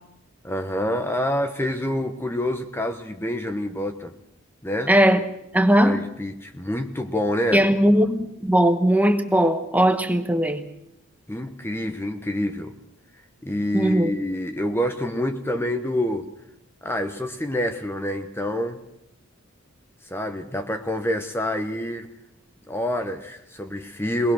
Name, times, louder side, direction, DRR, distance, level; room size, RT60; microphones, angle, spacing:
voice 1, 0.4-4.1 4.6-4.9 5.8-7.6 11.3-12.7 13.4-16.3 16.8-18.8 20.1-22.1 22.7-24.3, left 1 dB, 10° left, 6 dB, 1.0 m, -27 dB
voice 2, 4.9-5.2 5.5-6.0 7.5-10.6 13.7-14.1, equal, 5° right, 7 dB, 1.1 m, -19 dB
23.0 x 19.0 x 6.4 m, 0.82 s
head